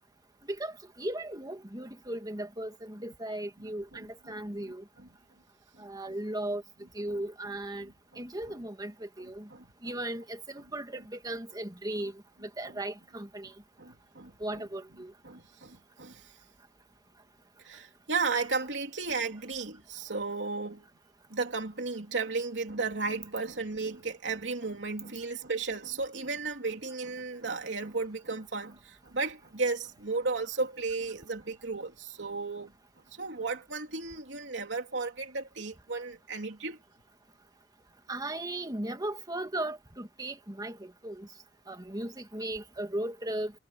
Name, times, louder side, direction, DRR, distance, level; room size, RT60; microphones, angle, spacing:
voice 1, 0.4-4.8 5.8-6.6 6.9-7.9 8.2-9.5 9.8-13.5 14.4-15.1 38.1-41.3 41.7-43.5, right 1 dB, 20° right, 2.0 m, -37 dB
voice 2, 5.7-6.1 8.1-8.2 9.2-9.9 13.8-14.6 15.2-16.4 17.6-20.8 21.3-32.7 33.1-36.8, right 4 dB, 85° right, 3.2 m, -34 dB
head